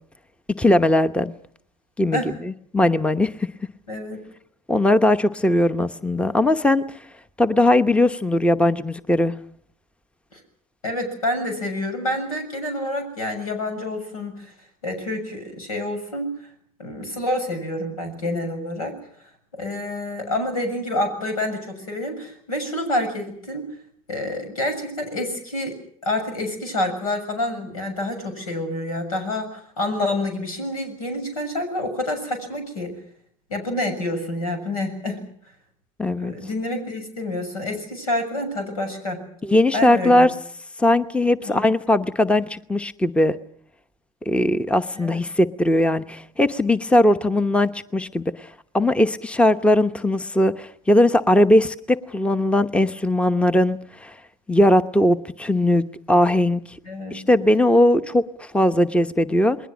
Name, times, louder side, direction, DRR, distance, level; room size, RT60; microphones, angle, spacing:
voice 1, 0.6-1.3 2.0-3.5 4.7-6.9 7.4-9.3 36.0-36.3 39.4-40.3 40.8-43.4 44.3-54.1 54.5-56.6 57.1-59.6, left 1 dB, 5° left, 12 dB, 1.0 m, -19 dB
voice 2, 3.9-4.2 10.3-10.4 10.8-14.5 14.8-16.4 16.8-18.9 19.5-23.7 24.1-32.9 33.5-35.2 36.2-39.2 39.7-40.3 41.4-41.6 44.9-45.2 56.8-57.2, left 1 dB, 90° left, 7 dB, 6.9 m, -28 dB
29.0 x 21.0 x 6.2 m, 0.63 s
hypercardioid pair, 80°, 18 cm